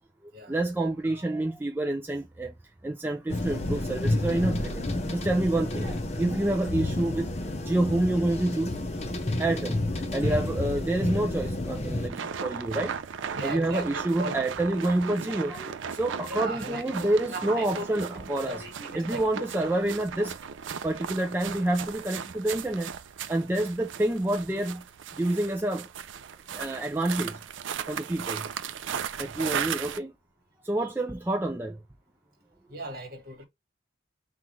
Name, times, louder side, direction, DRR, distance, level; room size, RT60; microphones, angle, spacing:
voice 1, 0.5-2.5 2.8-4.8 5.1-7.3 7.6-8.8 9.4-9.8 10.1-12.9 13.4-18.6 19.0-20.3 20.8-22.9 23.3-24.8 25.2-25.9 26.5-27.3 27.9-28.4 29.2-30.1 30.7-31.7, right 1 dB, 10° right, 0.3 m, -28 dB
sound 1, 3.3-12.1, left 1 dB, 35° left, 0.6 m, -30 dB
sound 2, 12.1-30.0, right 7 dB, 80° right, 0.4 m, -37 dB
voice 2, 13.3-14.4 16.3-17.9 18.1-19.4 30.8-30.9 32.7-33.5, right 2 dB, 50° right, 1.6 m, -38 dB
5.8 x 2.4 x 3.1 m
head